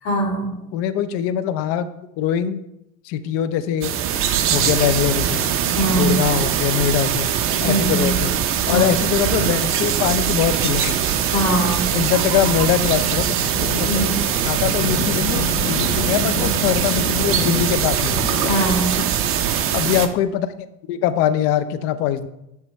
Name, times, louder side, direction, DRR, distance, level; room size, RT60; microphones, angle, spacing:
voice 1, 0.0-0.6 5.7-6.2 7.6-8.2 8.7-8.9 11.2-11.9 13.8-14.2 18.4-19.1, right 1 dB, 60° left, -1 dB, 2.0 m, -22 dB
voice 2, 0.7-1.9 2.2-2.6 3.0-4.0 4.5-5.5 5.9-7.3 7.6-8.4 8.7-11.0 11.9-14.1 14.4-18.3 19.7-20.5 20.9-22.3, left 10 dB, 30° left, 12 dB, 0.5 m, -22 dB
sound 1, 3.8-20.1, right 9 dB, 30° right, 0.6 m, -22 dB
Sink (filling or washing), 4.6-6.8 7.1-7.4 7.6-19.1, left 5 dB, 80° left, 0.9 m, -32 dB
9.7 x 3.3 x 4.1 m, 0.85 s
figure-of-eight pair, 80°, 46 cm